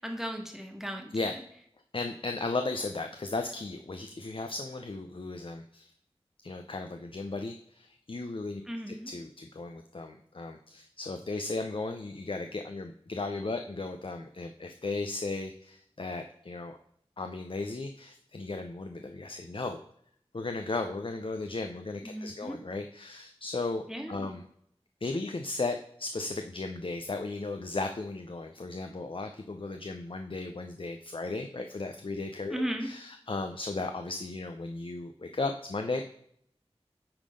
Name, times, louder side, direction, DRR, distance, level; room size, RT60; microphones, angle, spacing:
voice 1, 0.0-1.1 8.7-9.1 22.0-22.6 23.9-24.3 32.5-32.9, equal, 5° right, 3 dB, 1.4 m, -36 dB
voice 2, 1.9-5.9 6.4-8.6 8.9-16.8 17.2-19.8 20.3-24.4 25.0-36.0, left 3 dB, 55° left, 6 dB, 0.6 m, -35 dB
8.9 x 3.8 x 5.0 m, 0.68 s
wide cardioid pair, 50°, 11 cm